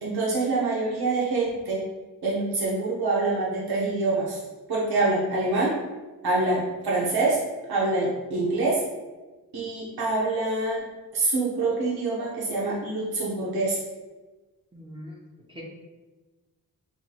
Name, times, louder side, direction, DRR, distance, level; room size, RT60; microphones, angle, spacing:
voice 1, 0.0-1.8 2.2-4.4 4.7-5.8 6.2-7.4 7.7-8.8 9.5-10.8 11.1-13.8, right 3 dB, 75° right, -5 dB, 1.0 m, -25 dB
voice 2, 14.7-15.1 15.5-15.6, left 1 dB, 15° right, -3 dB, 0.6 m, -41 dB
5.8 x 3.0 x 2.3 m, 1.2 s
wide cardioid pair, 165°, 38 cm